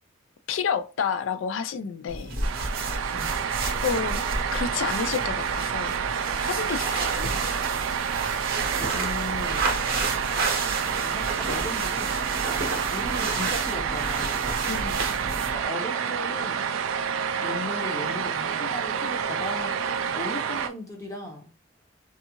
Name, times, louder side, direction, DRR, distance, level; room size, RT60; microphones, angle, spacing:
voice 1, 0.5-2.4 3.8-4.2 4.5-6.0 6.5-7.3 14.7-15.1, left 6 dB, 75° left, 0.4 m, -30 dB
sound 1, 2.1-15.6, right 3 dB, 50° right, 0.7 m, -31 dB
sound 2, 2.4-20.7, right 7 dB, 85° right, 0.3 m, -29 dB
voice 2, 8.8-10.2 11.0-12.2 12.9-14.5 15.5-16.6 17.4-19.7 20.1-21.5, left 1 dB, 15° left, 0.6 m, -37 dB
2.6 x 2.4 x 2.9 m
head